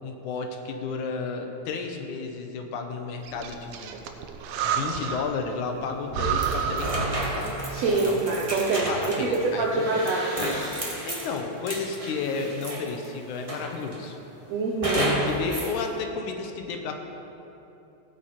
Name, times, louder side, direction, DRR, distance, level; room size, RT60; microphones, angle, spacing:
voice 1, 0.0-4.0 4.6-7.6 8.0-8.3 8.8-10.1 11.0-14.2 14.9-17.0, left 4 dB, 85° left, 4 dB, 2.4 m, -32 dB
Breathing, 3.2-5.4 5.8-5.9 6.1-7.8, right 7 dB, 85° right, 2.1 m, -30 dB
sound 1, 6.4-13.0 13.5-14.1 14.8-15.8, right 1 dB, 35° right, 0.5 m, -32 dB
voice 2, 7.7-10.4 14.5-15.1, right 3 dB, 70° right, -3 dB, 2.0 m, -25 dB
16.5 x 9.1 x 4.3 m, 2.9 s
omnidirectional pair, 3.4 m